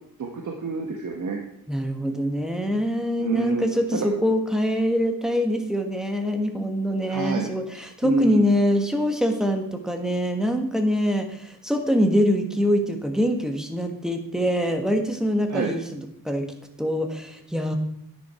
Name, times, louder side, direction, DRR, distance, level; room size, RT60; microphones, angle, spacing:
voice 1, 0.2-1.4 3.2-3.7 3.9-4.0 7.1-7.5 8.0-8.5 15.5-15.7, right 4 dB, 55° right, 2 dB, 1.5 m, -27 dB
voice 2, 1.7-16.4 16.8-17.8, equal, ahead, 5 dB, 1.6 m, -24 dB
10.5 x 10.0 x 4.5 m, 0.75 s
wide cardioid pair, 115°, 36 cm